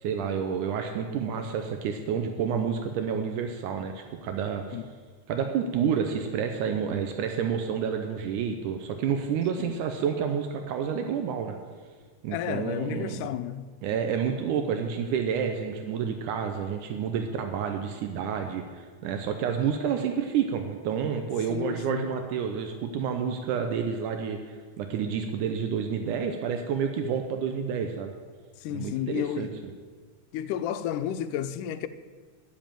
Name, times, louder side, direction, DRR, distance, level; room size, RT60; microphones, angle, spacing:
voice 1, 0.0-4.8 5.3-11.6 12.2-13.3 13.8-28.1 28.7-29.5, right 7 dB, 80° right, 2.2 m, -29 dB
voice 2, 12.3-13.7 21.5-22.0 28.6-29.5 30.3-31.9, left 10 dB, 85° left, 2.1 m, -32 dB
9.8 x 7.5 x 9.0 m
omnidirectional pair, 3.6 m